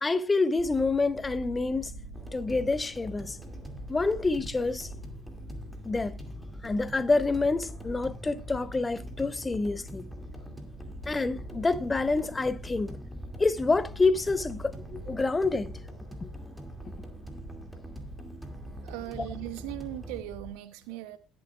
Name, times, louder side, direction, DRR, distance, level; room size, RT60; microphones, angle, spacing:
voice 1, 0.0-1.9 2.3-3.4 3.9-4.9 5.8-6.2 6.6-10.0 11.1-13.0 13.4-15.7 16.2-16.3, left 3 dB, 20° left, 0.7 m, -27 dB
sound 1, 0.6-20.5, equal, 30° right, 5.5 m, -45 dB
sound 2, 2.1-20.2, equal, ahead, 2.2 m, -45 dB
voice 2, 18.8-21.2, right 16 dB, 60° right, 0.8 m, -39 dB
20.5 x 7.1 x 2.3 m
figure-of-eight pair, 55°, 0 cm